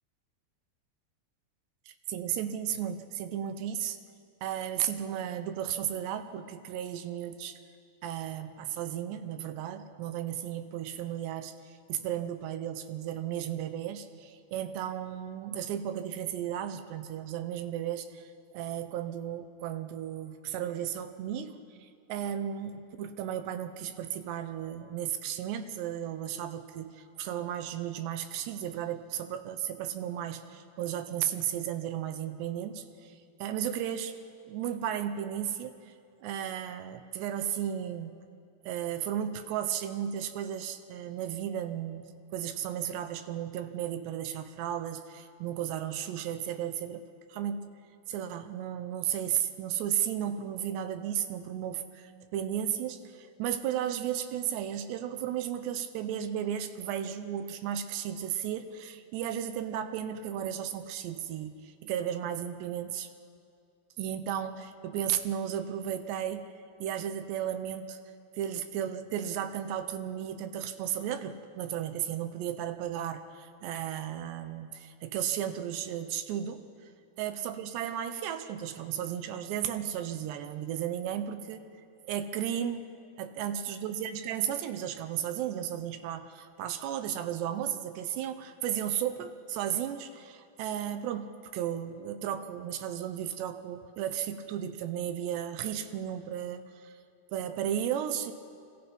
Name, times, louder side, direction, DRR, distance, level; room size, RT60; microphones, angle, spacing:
voice 1, 1.9-4.0 4.4-7.6 8.0-34.2 34.5-35.9 36.2-38.2 38.7-47.7 48.1-63.1 64.0-66.5 66.8-68.0 68.4-76.7 77.2-81.7 82.0-82.9 83.2-97.0 97.3-98.3, right 10 dB, 80° right, 9 dB, 3.0 m, -34 dB
26.0 x 21.5 x 5.3 m, 2.4 s
omnidirectional pair, 5.0 m